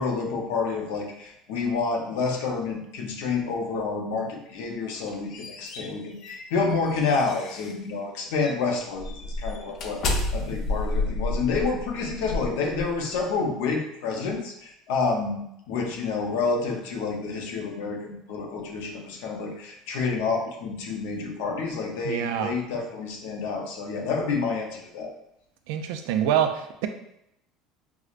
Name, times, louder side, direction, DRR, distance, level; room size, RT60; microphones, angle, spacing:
voice 1, 0.0-25.1, left 4 dB, 80° left, 2 dB, 0.6 m, -29 dB
sound 1, 4.9-7.8 8.3-8.5 9.0-13.2, left 2 dB, 40° left, 0.4 m, -31 dB
voice 2, 22.0-22.5 25.7-26.9, right 9 dB, 80° right, 7 dB, 0.3 m, -25 dB
4.6 x 2.1 x 2.4 m, 0.79 s
cardioid pair, 170°, 0 cm